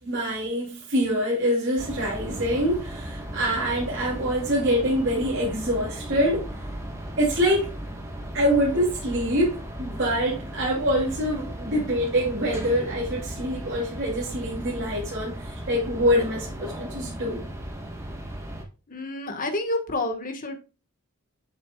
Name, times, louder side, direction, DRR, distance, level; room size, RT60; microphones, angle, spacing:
voice 1, 0.0-6.5 7.2-7.7 8.3-17.4, equal, 55° right, 2.8 m, -25 dB
sound 1, 1.8-18.7, right 1 dB, 15° right, 1.3 m, -36 dB
voice 2, 18.9-20.6, left 2 dB, 40° left, 1.4 m, -29 dB
7.9 x 6.4 x 2.3 m
head